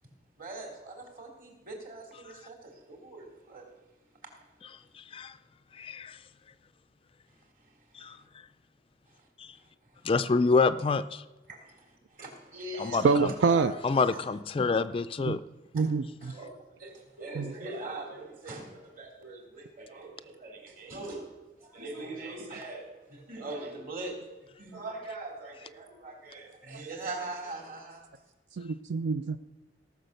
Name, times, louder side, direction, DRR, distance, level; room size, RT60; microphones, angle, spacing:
voice 1, 0.4-3.7 7.6-7.7 9.1-9.3 9.6-9.7 11.5-13.8 14.1-14.2 15.7-15.9 16.2-21.3 21.6-24.1 24.6-28.1, right 2 dB, 50° right, 0 dB, 2.9 m, -42 dB
voice 2, 5.8-6.2 8.0-8.2 9.4-9.5 10.0-11.2 12.8-13.3 13.8-15.4, left 4 dB, 30° left, 12 dB, 0.3 m, -27 dB
voice 3, 13.0-13.7 15.3-15.4 15.7-16.3 17.4-17.5 26.7-26.8 28.6-29.4, right 4 dB, 80° right, 11 dB, 0.4 m, -26 dB
17.5 x 6.0 x 6.6 m, 1.1 s
head